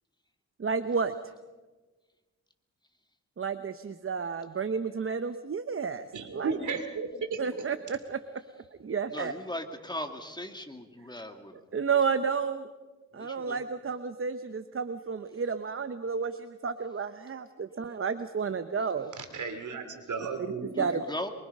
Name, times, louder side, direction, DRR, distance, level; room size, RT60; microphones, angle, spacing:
voice 1, 0.6-1.1 3.4-6.1 6.3-6.6 7.4-8.2 8.8-9.3 11.7-12.7 13.1-19.1 20.6-21.0, right 5 dB, 45° right, 10 dB, 1.0 m, -31 dB
voice 2, 6.1-7.4 19.2-20.7, right 5 dB, 75° right, 7 dB, 3.0 m, -34 dB
voice 3, 9.1-11.6 13.1-13.6 20.8-21.3, left 1 dB, 15° left, 5 dB, 2.2 m, -38 dB
24.5 x 23.0 x 5.5 m, 1.2 s
cardioid pair, 80°, 31 cm